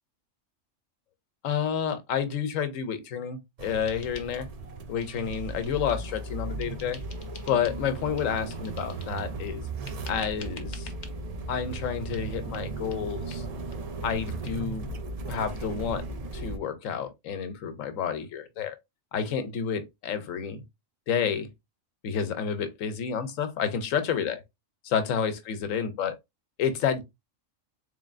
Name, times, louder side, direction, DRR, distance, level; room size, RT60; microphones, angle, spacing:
voice 1, 1.4-4.5 4.9-7.0 7.5-9.6 10.1-10.9 11.5-13.4 14.0-15.0 15.3-16.0 16.3-18.8 19.1-20.6 21.1-21.5 22.0-24.4 24.8-26.1 26.6-27.0, left 7 dB, 85° left, 1.1 m, -30 dB
sound 1, 3.6-16.6, right 2 dB, 60° right, 0.4 m, -36 dB
sound 2, 3.9-4.7 5.0-6.2 6.6-7.8 8.2-9.3 9.9-11.1 11.7-11.9 12.1-12.3 12.5-12.7 12.9-13.0 13.3-13.4 13.7-13.8 14.1-14.2 14.5-14.6, left 5 dB, 45° left, 0.7 m, -48 dB
3.9 x 3.4 x 2.4 m
omnidirectional pair, 1.3 m